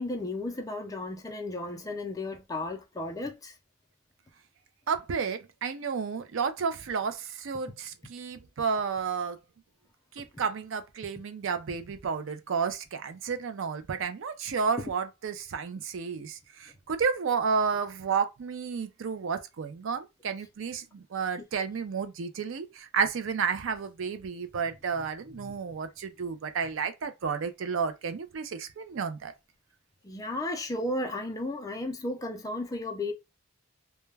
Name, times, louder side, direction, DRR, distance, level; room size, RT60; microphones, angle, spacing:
voice 1, 0.0-3.5 25.4-25.5 30.0-33.1, left 2 dB, 15° left, 0.4 m, -34 dB
voice 2, 4.9-9.4 10.2-29.3, right 6 dB, 65° right, 0.4 m, -31 dB
2.2 x 2.1 x 3.2 m
head